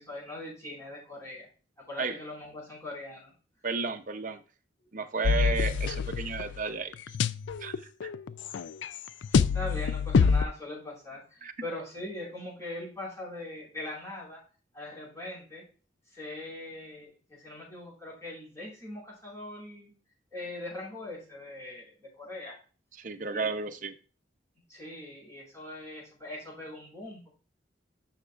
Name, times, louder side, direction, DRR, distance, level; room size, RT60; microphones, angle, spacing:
voice 1, 0.0-1.5 1.8-3.3 5.2-5.6 9.3-14.4 14.7-15.6 16.1-19.9 20.3-22.5 23.3-23.5 24.7-27.3, left 1 dB, 15° left, -5 dB, 4.9 m, -41 dB
voice 2, 3.6-4.4 4.9-6.9 7.6-7.7 8.0-8.1 11.4-11.5 23.0-23.9, right 4 dB, 45° right, 7 dB, 0.7 m, -32 dB
sound 1, 5.2-6.6 6.9-10.4, left 5 dB, 85° left, 0.4 m, -26 dB
13.5 x 5.8 x 2.5 m, 0.37 s
head